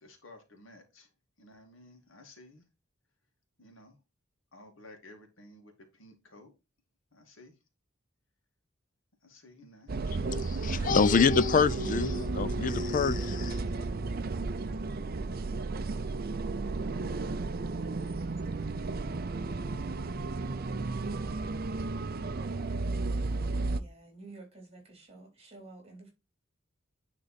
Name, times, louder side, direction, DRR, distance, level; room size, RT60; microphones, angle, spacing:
voice 1, 0.0-1.1 1.4-2.6 3.6-3.9 4.5-5.7 6.0-6.5 7.1-7.5 9.2-9.9, left 1 dB, 70° left, 2.2 m, -54 dB
sound 1, 9.9-23.8, right 3 dB, 45° right, 0.6 m, -33 dB
voice 2, 10.2-13.6, left 5 dB, 40° left, 0.4 m, -26 dB
voice 3, 23.7-26.1, right 2 dB, 30° right, 3.8 m, -50 dB
10.0 x 3.9 x 4.2 m
head